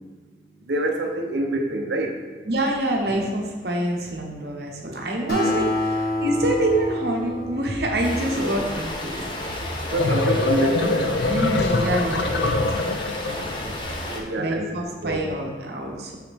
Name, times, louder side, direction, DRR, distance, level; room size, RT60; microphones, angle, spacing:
voice 1, 0.7-2.2 5.4-5.7 8.3-8.6 9.8-11.3 14.1-14.7 15.0-15.3, right 2 dB, 85° right, 2 dB, 0.7 m, -26 dB
voice 2, 2.4-9.6 10.0-10.1 11.3-12.6 13.2-13.7 14.4-16.2, right 1 dB, 70° right, 0 dB, 1.0 m, -26 dB
Acoustic guitar, 5.3-9.0, left 1 dB, 55° left, 1.5 m, -27 dB
sound 1, 8.0-14.2, left 1 dB, 30° left, 0.7 m, -32 dB
sound 2, 9.7-13.6, left 3 dB, 80° left, 0.5 m, -24 dB
6.6 x 4.9 x 3.5 m, 1.5 s
head